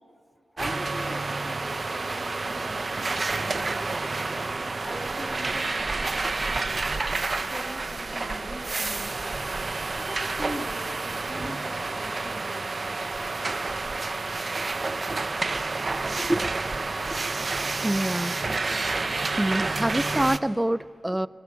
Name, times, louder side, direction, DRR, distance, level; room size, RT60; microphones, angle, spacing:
voice 1, 0.5-4.2 4.8-6.9 7.4-9.4 10.0-13.1, left 1 dB, 10° left, 2 dB, 3.1 m, -41 dB
sound 1, 0.6-20.4, right 3 dB, 40° right, 0.8 m, -29 dB
voice 2, 16.1-16.5 17.1-17.4 17.8-18.4 19.4-21.3, right 1 dB, 10° right, 17 dB, 0.5 m, -26 dB
22.0 x 19.5 x 8.3 m, 2.4 s
wide cardioid pair, 85°, 0 cm